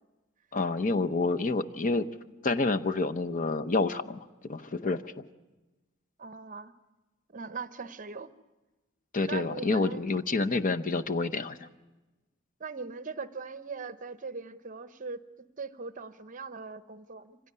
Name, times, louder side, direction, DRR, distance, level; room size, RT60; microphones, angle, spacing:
voice 1, 0.5-2.1 2.4-5.3 9.1-11.7, left 3 dB, 40° left, 9 dB, 0.8 m, -28 dB
voice 2, 6.2-6.7 7.3-8.3 9.3-10.0 12.6-15.2 15.6-17.4, right 4 dB, 40° right, 12 dB, 0.9 m, -40 dB
25.5 x 16.5 x 9.6 m, 1.1 s
head